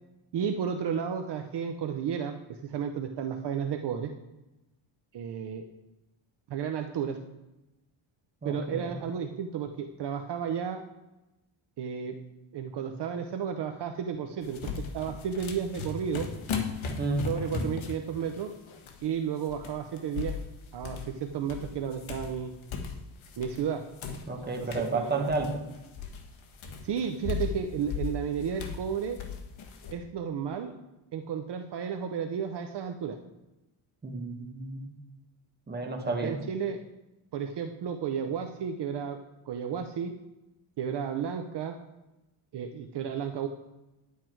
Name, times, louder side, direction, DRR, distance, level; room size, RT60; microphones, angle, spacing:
voice 1, 0.3-4.1 5.1-5.7 6.5-7.2 8.4-10.8 11.8-12.2 12.5-16.3 17.2-18.5 19.0-20.4 20.7-22.5 23.4-23.8 24.6-24.7 24.9-25.3 26.8-29.2 29.9-30.7 31.1-33.2 36.2-36.8 37.3-39.2 39.5-40.1 40.8-41.8 42.5-43.5, right 7 dB, 55° right, 6 dB, 0.8 m, -32 dB
voice 2, 8.4-8.9 17.0-17.3 24.3-25.5 34.0-34.9 35.7-36.3, right 3 dB, 20° right, 2 dB, 1.5 m, -31 dB
sound 1, 14.4-19.1 19.4-21.2 21.5-23.7 24.0-29.9, left 5 dB, 70° left, 1.5 m, -37 dB
10.5 x 8.4 x 4.5 m, 1.0 s
cardioid pair, 150°, 49 cm